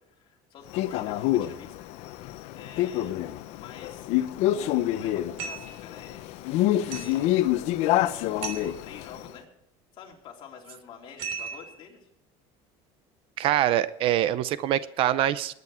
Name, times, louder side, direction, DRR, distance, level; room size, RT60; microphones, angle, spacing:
voice 1, 0.1-1.8 2.5-3.2 3.6-6.3 6.9-7.3 8.0-9.5 9.9-12.1, left 7 dB, 45° left, 0 dB, 3.5 m, -47 dB
Male speech man speaking, 0.7-9.3, left 14 dB, 60° left, 0.9 m, -27 dB
sound 1, 5.4-5.8 6.9-7.2 8.4-8.8 11.2-11.8, right 6 dB, 65° right, 3.1 m, -36 dB
voice 2, 13.4-15.5, right 12 dB, 50° right, 16 dB, 0.6 m, -24 dB
19.5 x 9.5 x 4.4 m, 0.80 s
cardioid pair, 155°, 12 cm